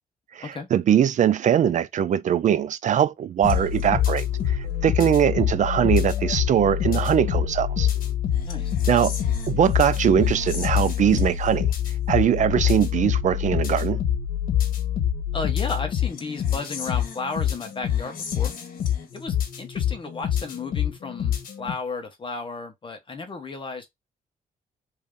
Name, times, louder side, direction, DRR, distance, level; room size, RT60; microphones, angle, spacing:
voice 1, 0.3-7.9 8.9-9.2 9.5-11.7 12.1-14.0, right 9 dB, 55° right, 0.5 m, -21 dB
sound 1, 3.4-21.7, left 10 dB, 70° left, 1.4 m, -26 dB
voice 2, 8.4-8.7 15.3-18.5 19.1-23.9, left 4 dB, 35° left, 1.0 m, -34 dB
3.3 x 2.7 x 3.6 m
cardioid pair, 110°, 15 cm